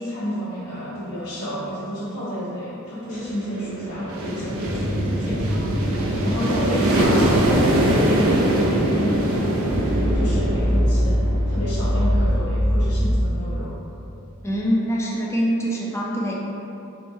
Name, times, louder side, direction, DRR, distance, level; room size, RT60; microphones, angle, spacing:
voice 1, 0.0-11.2 11.5-13.7, equal, 85° left, -14 dB, 1.0 m, -31 dB
sound 1, 3.1-11.7, right 1 dB, 65° right, 0.4 m, -22 dB
sound 2, 4.7-13.2, equal, 80° right, 0.9 m, -24 dB
voice 2, 14.4-16.3, equal, 10° left, -3 dB, 0.4 m, -24 dB
4.3 x 2.0 x 3.6 m, 2.8 s
head